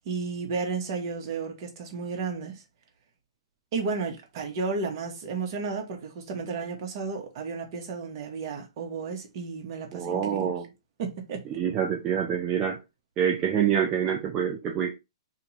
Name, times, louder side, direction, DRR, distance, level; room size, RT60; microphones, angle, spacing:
voice 1, 0.0-2.6 3.7-10.5 11.0-11.4, right 4 dB, 45° right, 1.2 m, -33 dB
voice 2, 9.9-10.7 11.6-12.8 13.2-14.9, right 8 dB, 25° right, 0.5 m, -26 dB
2.9 x 2.8 x 4.0 m
hypercardioid pair, 135°, 3 cm